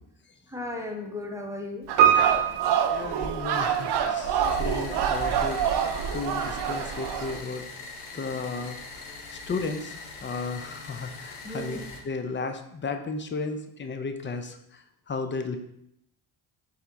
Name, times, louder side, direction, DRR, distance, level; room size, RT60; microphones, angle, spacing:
voice 1, 0.5-1.9 8.3-8.7 11.4-11.8, left 1 dB, 5° right, 1 dB, 0.7 m, -36 dB
sound 1, 1.9-7.4, right 8 dB, 55° right, 0.5 m, -27 dB
Piano, 2.0-4.0 4.3-4.4, right 9 dB, 85° right, 1.0 m, -23 dB
voice 2, 2.9-5.6 6.1-7.6 8.1-11.8 12.0-14.8 15.1-15.6, left 4 dB, 25° left, 7 dB, 0.4 m, -34 dB
sound 2, 4.4-12.0, left 4 dB, 85° left, 0.7 m, -42 dB
4.2 x 2.4 x 3.9 m, 0.77 s
supercardioid pair, 60°, 48 cm